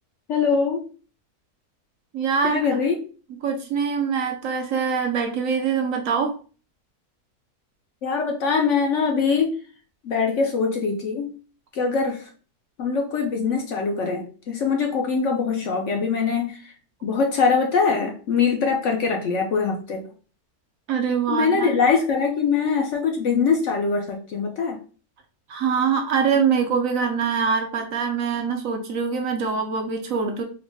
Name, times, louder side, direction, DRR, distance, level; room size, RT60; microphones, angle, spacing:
voice 1, 0.3-0.8 2.4-3.0 8.0-9.6 10.0-11.3 11.7-12.3 12.8-16.7 17.0-20.1 21.3-24.8, left 5 dB, 60° left, 2 dB, 0.8 m, -23 dB
voice 2, 2.1-2.6 3.4-6.3 20.9-21.7 25.5-30.4, right 6 dB, 70° right, 3 dB, 0.9 m, -24 dB
3.8 x 2.0 x 3.3 m, 0.38 s
omnidirectional pair, 1.6 m